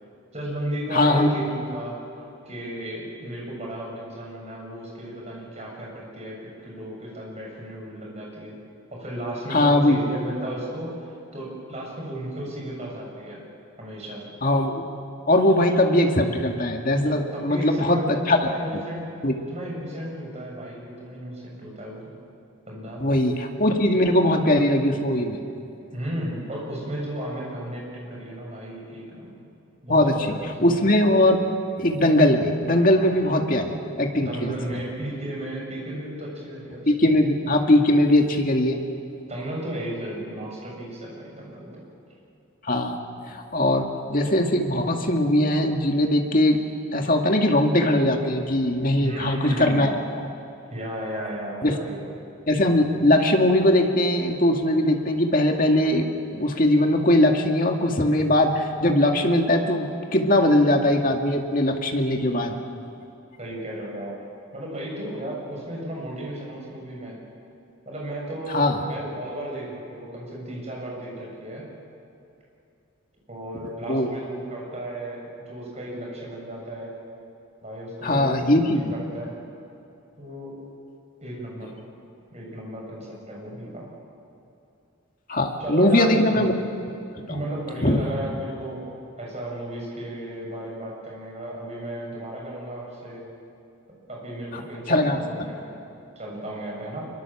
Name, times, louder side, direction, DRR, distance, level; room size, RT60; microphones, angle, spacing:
voice 1, 0.3-2.0 2.5-8.6 8.9-13.4 13.8-14.3 17.3-19.1 19.5-22.1 22.7-23.1 25.9-29.3 29.8-30.4 34.2-37.1 39.2-41.8 49.0-49.9 50.7-52.0 63.4-64.2 64.5-67.2 67.9-71.6 73.3-76.9 77.6-78.3 78.7-79.3 80.2-80.6 81.2-81.8 82.3-83.9 85.6-86.4 87.3-88.8 89.2-93.3 94.1-95.8 96.2-97.0, right 1 dB, 30° right, -2 dB, 7.0 m, -34 dB
voice 2, 0.9-1.3 9.5-10.0 14.4-14.8 15.3-18.4 19.2-19.3 23.0-25.4 29.9-30.1 30.6-31.4 31.8-33.7 34.0-34.5 36.9-38.8 42.7-43.0 43.3-46.6 46.9-49.9 51.6-51.8 52.5-62.6 68.5-68.8 73.9-74.1 78.0-78.9 85.3-86.5 87.3-87.4 87.8-88.0 94.9-95.5, left 1 dB, 40° left, 3 dB, 2.2 m, -20 dB
25.0 x 23.5 x 7.4 m, 2.7 s
head